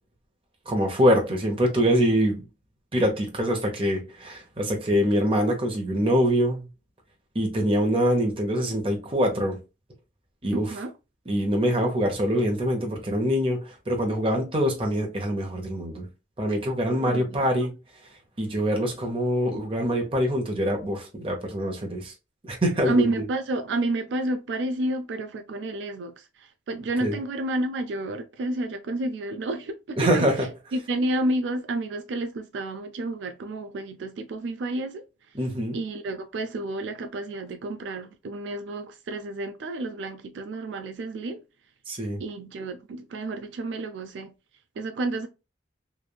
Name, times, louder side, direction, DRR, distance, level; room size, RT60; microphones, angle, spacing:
voice 1, 0.7-2.4 2.9-6.7 7.3-9.6 10.4-10.7 11.3-16.1 16.4-17.7 18.4-22.1 22.4-23.2 27.0-27.2 30.0-30.5 35.3-35.8 41.9-42.2, equal, 30° right, 0.8 m, -24 dB
voice 2, 10.5-10.9 17.0-17.5 22.8-30.3 30.7-35.0 35.7-41.4 42.2-44.3 44.8-45.3, right 2 dB, 80° right, 0.4 m, -30 dB
3.1 x 2.4 x 2.2 m
head